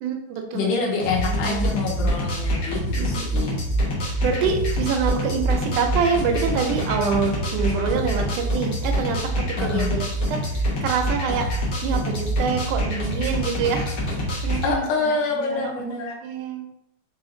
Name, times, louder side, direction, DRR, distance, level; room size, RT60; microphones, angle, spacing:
voice 1, 0.0-1.7 2.8-3.5 4.2-13.9 14.4-15.9 16.2-16.7, right 6 dB, 80° right, 2 dB, 2.2 m, -26 dB
voice 2, 0.5-3.6 9.6-10.0 14.6-16.2, left 4 dB, 90° left, 0 dB, 2.5 m, -26 dB
sound 1, 1.0-14.7, equal, 60° left, 1.1 m, -25 dB
4.9 x 4.1 x 2.6 m, 0.77 s
omnidirectional pair, 3.7 m